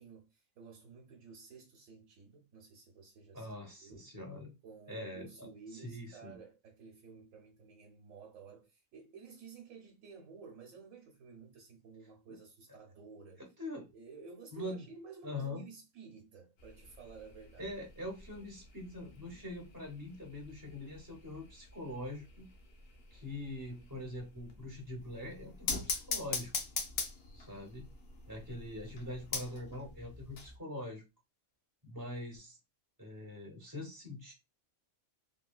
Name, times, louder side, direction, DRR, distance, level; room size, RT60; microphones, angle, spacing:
voice 1, 0.0-3.5 3.8-4.1 4.6-13.5 13.9-17.7 18.3-18.5, right 5 dB, 85° right, 1.1 m, -53 dB
voice 2, 3.3-4.5 4.9-6.4 12.3-12.4 13.4-13.9 14.5-14.8 15.2-15.7 17.6-22.5 23.1-26.5 27.3-27.9 28.3-31.0 31.8-32.6 33.0-34.3, left 1 dB, 20° right, 0.5 m, -43 dB
sound 1, 16.6-30.6, left 4 dB, 55° left, 0.8 m, -44 dB
3.5 x 2.2 x 2.3 m
omnidirectional pair, 1.3 m